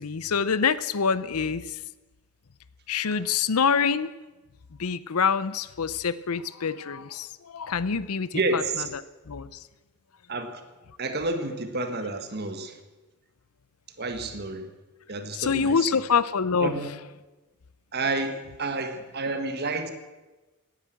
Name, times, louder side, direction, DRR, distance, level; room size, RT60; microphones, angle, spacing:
voice 1, 0.0-1.8 2.9-4.1 4.8-9.0 9.3-9.6 15.3-16.8, left 6 dB, 85° left, 16 dB, 0.7 m, -26 dB
voice 2, 8.3-8.9 10.3-10.6 11.0-12.8 14.0-14.7 15.1-15.9 16.6-16.9 17.9-19.9, right 2 dB, 45° right, 8 dB, 1.6 m, -30 dB
17.5 x 10.5 x 7.6 m, 1.2 s
head